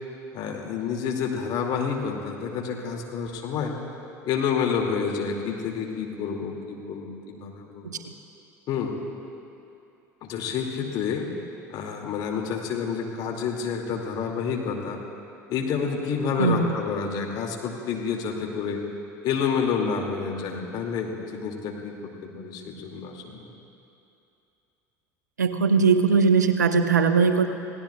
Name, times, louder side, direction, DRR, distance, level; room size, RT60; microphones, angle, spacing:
voice 1, 0.3-3.7 4.2-7.9 8.7-8.9 10.2-11.3 11.7-15.0 15.5-18.8 19.2-23.5, left 6 dB, 50° left, 1 dB, 2.4 m, -29 dB
voice 2, 16.4-16.7 25.4-27.5, right 5 dB, 85° right, 8 dB, 0.8 m, -20 dB
28.5 x 17.5 x 2.3 m, 2.7 s
figure-of-eight pair, 70°, 9 cm